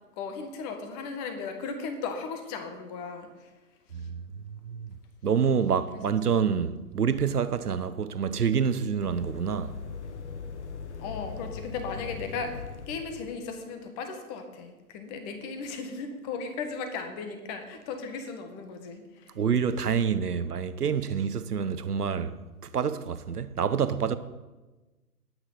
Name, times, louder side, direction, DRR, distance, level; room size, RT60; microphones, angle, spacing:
voice 1, 0.2-3.5 3.9-4.1 5.9-6.2 6.6-6.7 11.0-19.4, left 5 dB, 25° left, 1.7 m, -36 dB
voice 2, 3.9-5.0 5.2-9.8 19.4-24.2, right 7 dB, 75° right, 1.1 m, -27 dB
sound 1, 9.0-13.5, left 5 dB, 45° left, 1.5 m, -40 dB
19.5 x 9.0 x 4.1 m
figure-of-eight pair, 135°, 46 cm